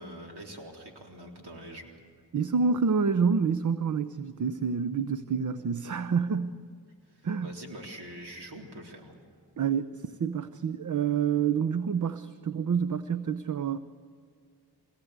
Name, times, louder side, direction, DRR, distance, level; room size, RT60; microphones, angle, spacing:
voice 1, 0.0-2.0 7.1-9.2, right 1 dB, 70° right, 1 dB, 3.8 m, -44 dB
voice 2, 2.3-6.6 7.2-7.6 9.6-13.8, right 6 dB, 45° right, 13 dB, 0.8 m, -28 dB
23.0 x 18.5 x 8.2 m, 2.1 s
cardioid pair, 65°, 41 cm